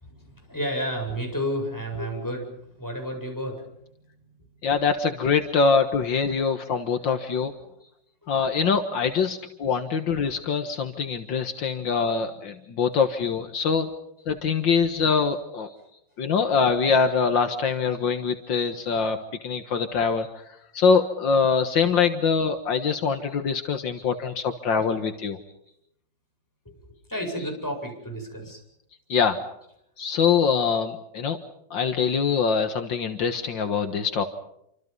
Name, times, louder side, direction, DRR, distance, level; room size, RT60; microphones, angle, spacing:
voice 1, 0.1-3.7 7.8-7.9 9.1-9.2 10.7-10.8 11.5-11.6 15.7-15.9 19.0-19.1 19.9-20.0 26.6-28.6, equal, 10° left, 1 dB, 7.9 m, -32 dB
voice 2, 4.6-7.5 8.3-13.9 14.3-15.7 16.2-19.2 19.4-20.3 20.7-25.4 29.1-29.4 30.0-31.4 31.7-34.2, left 5 dB, 75° left, 7 dB, 2.1 m, -23 dB
28.5 x 26.0 x 5.5 m, 0.76 s
omnidirectional pair, 2.1 m